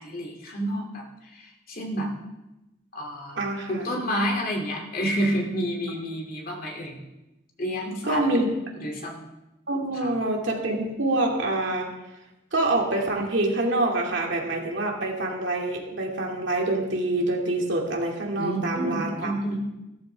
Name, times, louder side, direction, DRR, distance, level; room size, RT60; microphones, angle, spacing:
voice 1, 0.0-2.1 2.9-3.4 3.7-7.0 7.6-8.2 8.7-9.3 10.0-10.1 18.4-19.6, equal, 45° left, -1 dB, 2.8 m, -29 dB
voice 2, 3.4-3.8 8.0-8.5 9.7-11.9 12.5-19.3, right 2 dB, 65° right, 0 dB, 2.4 m, -26 dB
15.5 x 14.0 x 3.5 m, 0.96 s
head